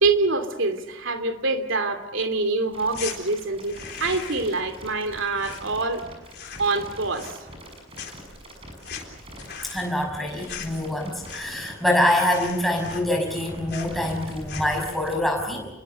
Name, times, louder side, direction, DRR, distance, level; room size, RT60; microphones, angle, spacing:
voice 1, 0.0-6.0 6.6-7.3, right 3 dB, 70° right, 8 dB, 2.7 m, -25 dB
sound 1, 2.7-15.1, right 1 dB, 25° right, 6.8 m, -44 dB
sound 2, 2.9-3.2 3.6-4.6 4.8-6.0 6.3-6.8 7.1-7.7 7.9-11.7 12.0-12.1 12.3-13.4 13.7-14.0 14.4-14.8, left 7 dB, 55° left, 3.9 m, -39 dB
voice 2, 9.6-15.7, left 1 dB, ahead, 0 dB, 5.9 m, -25 dB
28.5 x 22.0 x 6.9 m, 1.1 s
head